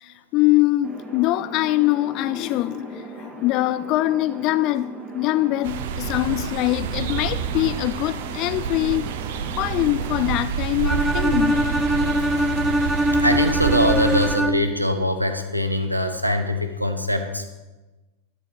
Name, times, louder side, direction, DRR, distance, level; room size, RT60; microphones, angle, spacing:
voice 1, 0.0-4.9 5.1-9.1 9.6-11.9 12.2-12.5, left 17 dB, 40° left, 0.3 m, -23 dB
sound 1, 0.8-10.4, right 1 dB, 20° right, 2.5 m, -38 dB
sound 2, 5.6-14.4, right 8 dB, 55° right, 1.0 m, -28 dB
Bowed string instrument, 10.9-14.8, equal, 5° right, 0.6 m, -22 dB
voice 2, 13.2-17.4, equal, 90° right, 1.1 m, -22 dB
12.5 x 10.5 x 5.3 m
figure-of-eight pair, 90°, 0 cm